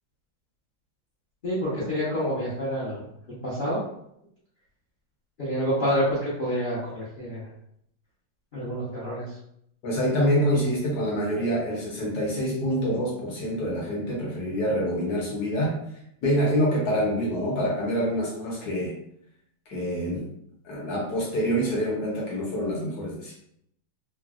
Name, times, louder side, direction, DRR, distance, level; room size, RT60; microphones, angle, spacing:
voice 1, 1.4-3.0 3.4-3.8 5.4-7.4 8.5-9.2, equal, 85° left, -9 dB, 0.4 m, -27 dB
voice 2, 9.8-15.7 16.2-19.0 19.7-20.3 20.6-23.3, equal, 65° left, -4 dB, 1.0 m, -26 dB
3.8 x 2.0 x 2.3 m, 0.73 s
omnidirectional pair, 2.3 m